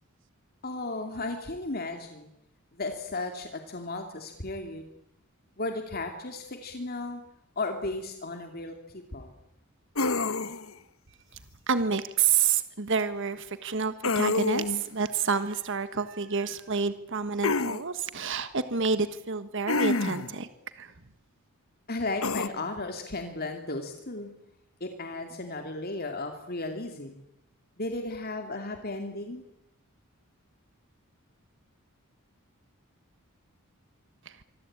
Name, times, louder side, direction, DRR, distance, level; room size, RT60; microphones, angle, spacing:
voice 1, 0.6-2.3 2.7-4.8 5.6-7.2 7.6-8.7 9.1-9.3 21.9-24.3 24.8-27.2 27.8-29.4, left 2 dB, 45° left, 5 dB, 2.7 m, -35 dB
sound 1, 10.0-10.7 14.0-14.8 17.4-17.8 19.7-20.3 22.2-22.5, left 3 dB, 65° left, 1.2 m, -27 dB
voice 2, 11.7-20.5 20.8-20.9 34.2-34.4, right 5 dB, 55° right, 11 dB, 1.5 m, -28 dB
25.5 x 24.5 x 8.8 m, 0.83 s
head